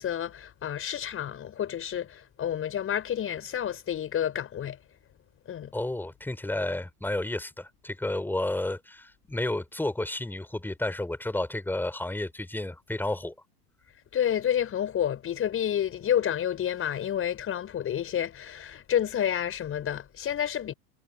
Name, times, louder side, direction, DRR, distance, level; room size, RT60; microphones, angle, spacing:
voice 1, 0.0-4.8 5.5-5.7 14.1-20.7, left 10 dB, 30° left, 5.8 m, -29 dB
voice 2, 5.7-13.3, left 1 dB, 5° left, 6.7 m, -31 dB
hypercardioid pair, 100°, 46 cm